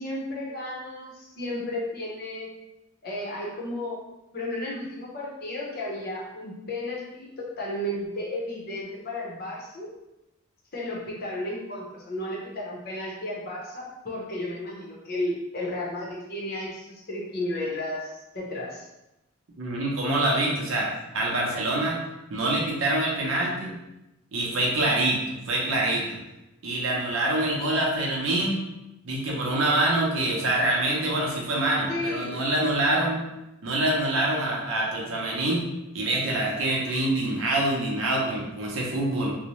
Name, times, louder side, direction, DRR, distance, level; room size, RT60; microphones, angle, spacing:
voice 1, 0.0-2.5 3.0-4.0 4.3-9.9 10.7-18.9 31.9-32.4, left 1 dB, 45° left, -4 dB, 0.7 m, -33 dB
voice 2, 19.6-22.0 22.3-23.8 24.3-26.2 26.6-28.6 29.0-33.2 33.6-35.6 35.9-39.4, right 1 dB, 75° right, -3 dB, 0.6 m, -25 dB
2.7 x 2.0 x 3.0 m, 0.94 s
head